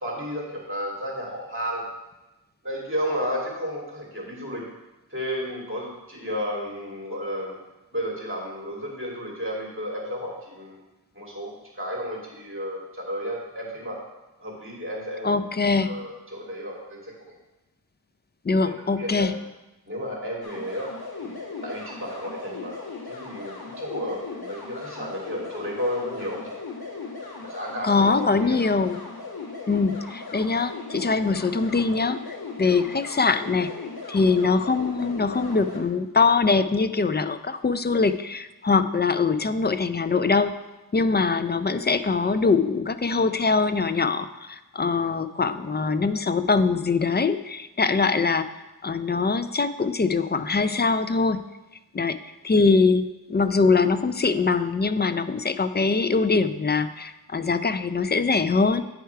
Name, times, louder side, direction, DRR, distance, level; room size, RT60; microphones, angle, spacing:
voice 1, 0.0-1.8 2.6-4.7 5.1-7.5 7.9-10.8 11.1-14.0 14.4-15.4 15.7-17.3 18.6-19.3 19.9-20.9 21.2-22.8 23.0-26.5 27.4-28.6, equal, 30° right, -3 dB, 2.6 m, -32 dB
voice 2, 15.2-15.9 18.4-19.4 27.8-29.0 29.7-32.2 32.6-33.7 34.1-40.5 40.9-48.5 48.8-51.4 51.9-52.2 52.4-58.8, left 4 dB, 25° left, 11 dB, 0.4 m, -23 dB
sound 1, 20.4-35.8, left 4 dB, 70° left, 1.4 m, -38 dB
9.2 x 4.6 x 4.6 m, 1.0 s
wide cardioid pair, 55°, 39 cm